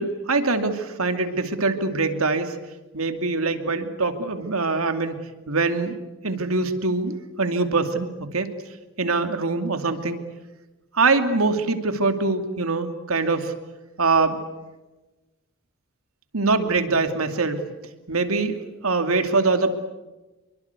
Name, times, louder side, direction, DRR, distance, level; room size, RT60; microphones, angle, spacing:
voice 1, 0.0-2.6 2.9-6.0 6.2-8.5 9.0-10.2 10.9-13.5 14.0-14.4 16.3-17.7 18.1-19.7, right 3 dB, 90° right, 8 dB, 2.6 m, -23 dB
27.0 x 23.5 x 8.2 m, 1.1 s
head